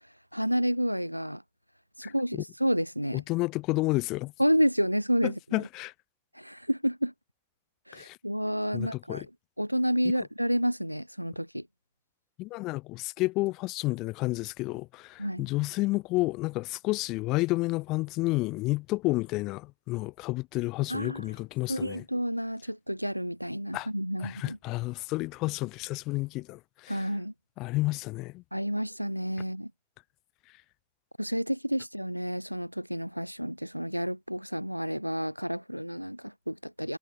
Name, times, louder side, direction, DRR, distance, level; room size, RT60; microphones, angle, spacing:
voice 1, 0.3-1.4 2.0-3.2 4.4-5.6 6.3-7.1 7.9-9.3 9.6-11.7 15.2-15.5 20.9-21.3 21.7-24.6 26.9-27.3 28.5-29.7 31.2-37.0, equal, 90° right, 2.7 m, -30 dB
voice 2, 2.0-2.4 3.1-4.3 5.2-5.9 7.9-8.2 8.7-9.3 12.4-22.0 23.7-23.9 24.2-27.0 27.6-28.4, left 21 dB, 40° left, 1.5 m, -31 dB
figure-of-eight pair, 90°, 0 cm